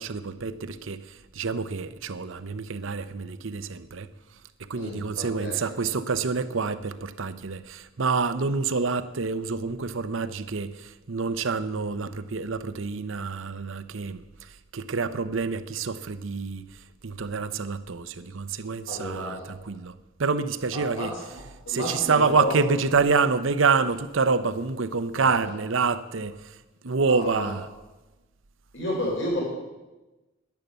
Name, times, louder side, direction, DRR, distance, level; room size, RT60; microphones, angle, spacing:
voice 1, 0.0-4.1 4.7-16.6 17.0-19.4 19.6-19.9 20.2-21.1 21.7-26.6 26.8-27.7, right 4 dB, 65° right, 0.7 m, -27 dB
voice 2, 4.7-5.6 18.9-19.4 20.7-22.6 25.2-25.5 27.1-27.5 28.7-29.4, left 1 dB, 60° left, 4.6 m, -32 dB
10.5 x 10.5 x 8.1 m
head